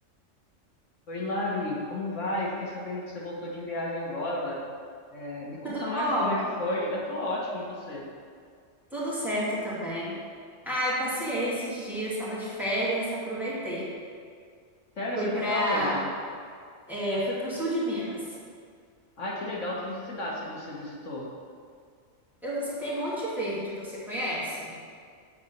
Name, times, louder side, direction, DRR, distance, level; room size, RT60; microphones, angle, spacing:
voice 1, 1.1-4.6 5.1-8.0 15.0-16.1 19.2-21.3, left 1 dB, 80° left, -4 dB, 1.7 m, -32 dB
voice 2, 5.6-6.3 8.9-10.2 10.6-13.9 15.2-16.1 16.9-18.2 22.4-24.8, equal, ahead, -9 dB, 2.2 m, -30 dB
8.1 x 4.2 x 6.6 m, 2.1 s
omnidirectional pair, 1.3 m